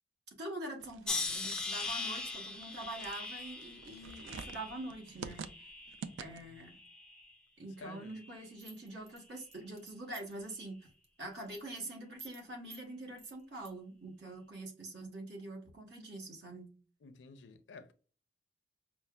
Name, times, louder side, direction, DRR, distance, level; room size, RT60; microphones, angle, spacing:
voice 1, 0.4-5.5 6.2-6.8 7.6-10.9 11.2-16.7, right 2 dB, 60° right, 1.1 m, -45 dB
sound 1, 0.8-6.6, right 5 dB, 85° right, 0.4 m, -48 dB
sound 2, 1.1-6.2 6.6-7.3 8.1-8.4, left 3 dB, 5° left, 0.3 m, -41 dB
voice 2, 6.2-6.6 7.8-8.2 17.0-17.9, left 4 dB, 70° left, 0.4 m, -52 dB
sound 3, 8.6-10.4 10.8-11.1 11.3-11.8 12.2-12.4 12.7-12.8 13.2-13.7, right 3 dB, 35° right, 0.7 m, -53 dB
5.3 x 2.0 x 2.2 m
head